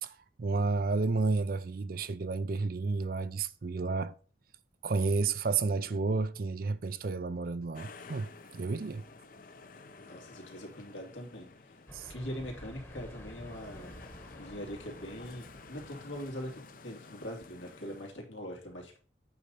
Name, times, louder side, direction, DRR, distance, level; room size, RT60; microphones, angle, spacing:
voice 1, 0.0-4.1 4.8-9.0 11.9-12.1, right 4 dB, 50° right, 0.4 m, -31 dB
sound 1, 7.7-18.1, left 3 dB, 45° left, 0.6 m, -52 dB
voice 2, 10.0-11.8 12.0-13.9 14.4-19.0, equal, 85° left, 2.7 m, -42 dB
sound 2, 11.9-16.8, equal, 10° left, 1.1 m, -51 dB
8.5 x 4.2 x 5.4 m
head